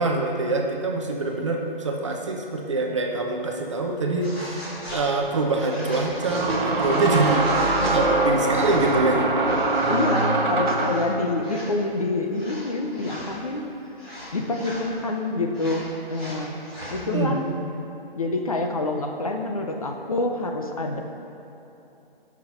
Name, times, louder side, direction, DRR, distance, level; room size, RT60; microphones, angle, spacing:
voice 1, 0.0-9.3 17.0-17.4, right 3 dB, 30° right, 1 dB, 0.8 m, -25 dB
sound 1, 4.2-5.0 5.5-8.0 8.4-9.0 9.3-10.2 10.7-11.1 11.4-11.7 12.3-13.3 14.0-14.9 15.5-17.0, equal, 10° left, 0.9 m, -37 dB
sound 2, 4.3-4.4 6.2-11.1, right 2 dB, 60° right, 1.3 m, -22 dB
voice 2, 9.9-13.7 14.3-16.6 16.9-17.5 18.2-21.0, left 2 dB, 35° left, 3 dB, 0.6 m, -27 dB
15.0 x 6.2 x 4.4 m, 3.0 s
hypercardioid pair, 175°, 30 cm